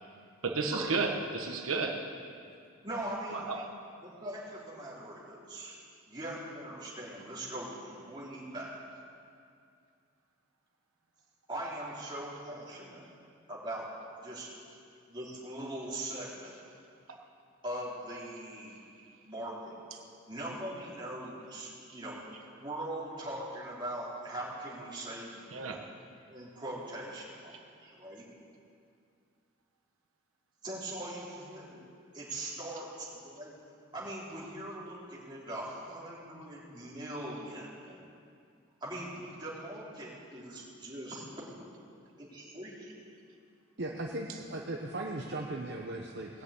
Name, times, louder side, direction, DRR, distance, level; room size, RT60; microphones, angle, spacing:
voice 1, 0.4-2.1 3.3-3.7 17.1-17.2 19.0-19.1 19.9-20.0 21.9-22.0 25.5-25.9 27.5-27.6, right 4 dB, 85° right, 2 dB, 1.2 m, -33 dB
voice 2, 2.8-3.5 4.0-5.7 6.1-8.8 11.5-13.0 13.5-13.8 14.1-14.5 15.1-16.5 17.6-18.8 19.2-19.7 20.3-22.2 22.5-25.9 26.3-28.3 30.6-31.8 32.1-33.5 33.9-38.0 38.8-41.2 42.2-42.9, right 1 dB, 20° right, -7 dB, 3.3 m, -41 dB
voice 3, 43.8-46.4, right 2 dB, 55° right, -1 dB, 0.9 m, -37 dB
19.5 x 6.7 x 8.4 m, 2.4 s
head